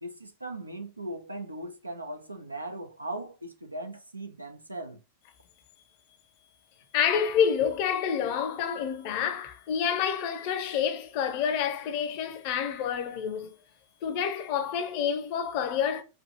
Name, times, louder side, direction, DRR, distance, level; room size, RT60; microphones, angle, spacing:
voice 1, 0.0-5.0, right 1 dB, 85° right, 0.6 m, -38 dB
voice 2, 6.9-13.6 14.0-16.0, left 8 dB, 45° left, 0.8 m, -28 dB
4.5 x 2.7 x 2.8 m
figure-of-eight pair, 90°, 0 cm